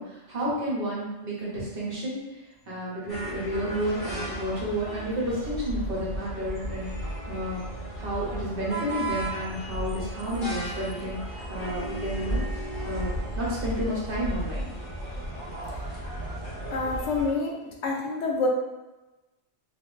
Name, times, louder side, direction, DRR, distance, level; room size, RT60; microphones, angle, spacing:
voice 1, 0.0-2.4 2.7-6.9 7.3-7.6 8.0-12.4 12.8-13.1 13.3-14.7, equal, 55° right, -6 dB, 0.9 m, -31 dB
sound 1, 3.1-17.3, right 1 dB, 50° left, 0.8 m, -34 dB
voice 2, 16.7-17.6 17.8-18.5, left 3 dB, 80° left, -1 dB, 0.9 m, -27 dB
2.4 x 2.0 x 3.0 m, 1.1 s
omnidirectional pair, 1.2 m